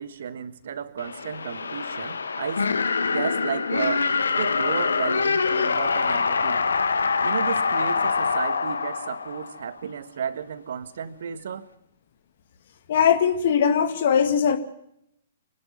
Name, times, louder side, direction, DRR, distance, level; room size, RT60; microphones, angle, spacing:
voice 1, 0.0-2.6 3.1-4.1 4.4-6.6 7.2-11.7, right 7 dB, 60° right, 13 dB, 1.6 m, -33 dB
sound 1, 1.0-9.8, left 5 dB, 70° left, 1.6 m, -25 dB
voice 2, 12.9-14.6, left 7 dB, 50° left, 9 dB, 2.1 m, -20 dB
26.0 x 12.5 x 9.6 m, 0.76 s
figure-of-eight pair, 115°, 0 cm